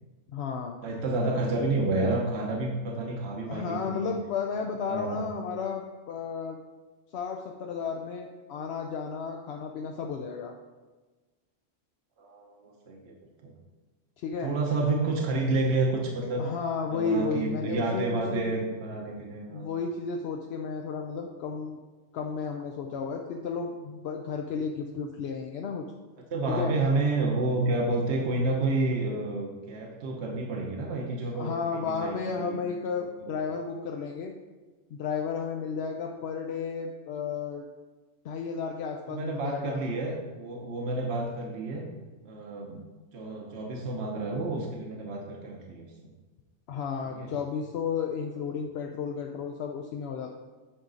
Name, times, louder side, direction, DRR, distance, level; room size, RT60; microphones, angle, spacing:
voice 1, 0.3-0.7 3.5-6.6 7.1-10.5 14.2-14.5 16.4-18.5 19.5-21.8 22.1-25.8 26.5-26.7 31.3-34.3 34.9-37.7 38.2-39.8 46.7-50.3, left 5 dB, 65° left, 2 dB, 0.8 m, -33 dB
voice 2, 0.8-4.2 4.9-5.2 12.2-13.2 13.4-13.5 14.4-16.4 16.9-19.7 26.3-32.6 33.2-33.4 39.1-41.9 42.2-42.9 43.1-45.9 47.0-47.3, right 2 dB, 60° right, 0 dB, 1.2 m, -30 dB
8.7 x 5.1 x 3.9 m, 1.3 s
omnidirectional pair, 1.3 m